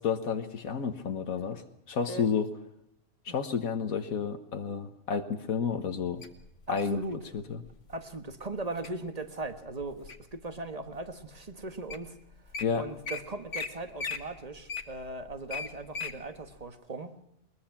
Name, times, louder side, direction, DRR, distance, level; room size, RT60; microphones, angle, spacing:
voice 1, 0.0-1.6 1.9-2.5 3.2-6.2 6.7-7.0 7.5-7.6 12.6-12.8, left 6 dB, 85° left, 7 dB, 1.7 m, -30 dB
Wild animals, 6.2-7.0 7.7-8.0 8.4-8.9 9.4-10.4 10.9-11.0 11.6-11.7 11.9-12.1 12.3-12.6 13.1-13.2 13.5-13.7 14.0-16.2 16.6-16.7, left 5 dB, 60° left, 1.9 m, -37 dB
voice 2, 6.7-7.2 7.9-12.2 12.7-17.1, right 2 dB, 30° right, 9 dB, 1.5 m, -38 dB
21.5 x 21.5 x 5.9 m, 0.81 s
omnidirectional pair, 1.4 m